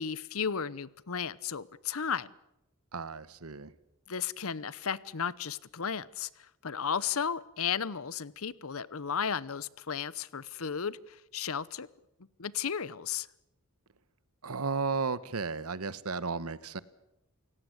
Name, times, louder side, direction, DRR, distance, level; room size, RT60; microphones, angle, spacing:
voice 1, 0.0-2.3 4.1-6.3 6.6-11.9 12.4-13.3, left 7 dB, 70° left, 19 dB, 0.8 m, -34 dB
voice 2, 2.9-3.7 14.4-16.8, right 4 dB, 80° right, 16 dB, 1.1 m, -34 dB
28.5 x 17.5 x 8.0 m, 0.90 s
head